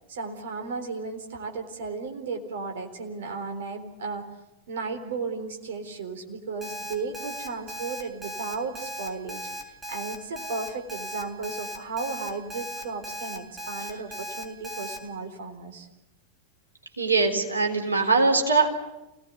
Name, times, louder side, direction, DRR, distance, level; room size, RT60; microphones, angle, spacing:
voice 1, 0.1-4.3 4.7-15.9, right 4 dB, 60° right, 4 dB, 3.8 m, -35 dB
Alarm, 6.6-15.0, equal, 5° right, 3.8 m, -37 dB
voice 2, 17.0-18.7, right 3 dB, 80° right, 3 dB, 3.8 m, -22 dB
27.5 x 18.5 x 8.3 m, 0.97 s
figure-of-eight pair, 90°, 0 cm